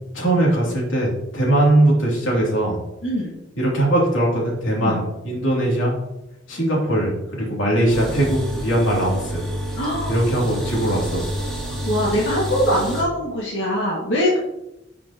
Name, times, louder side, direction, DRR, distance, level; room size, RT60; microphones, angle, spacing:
voice 1, 0.1-2.8 3.6-6.0 6.5-9.4 10.1-11.5, right 1 dB, 85° left, -3 dB, 3.1 m, -20 dB
voice 2, 3.0-3.4 4.8-5.0 9.8-10.2 11.7-14.4, equal, 65° left, -6 dB, 2.1 m, -22 dB
sound 1, 7.9-13.0, equal, 5° left, 2.8 m, -28 dB
11.5 x 6.0 x 3.0 m, 0.89 s
head